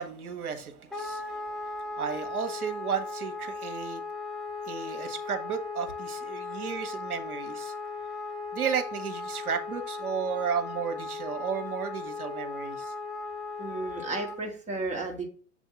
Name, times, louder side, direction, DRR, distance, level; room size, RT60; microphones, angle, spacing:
voice 1, 0.0-4.0 4.7-7.7 8.5-12.9, right 7 dB, 80° right, 6 dB, 1.2 m, -33 dB
Wind instrument woodwind instrument, 0.9-14.4, left 4 dB, ahead, 0.6 m, -37 dB
voice 2, 13.6-15.2, right 2 dB, 15° right, 1 dB, 1.6 m, -33 dB
7.5 x 2.7 x 5.5 m, 0.42 s
figure-of-eight pair, 100°, 44 cm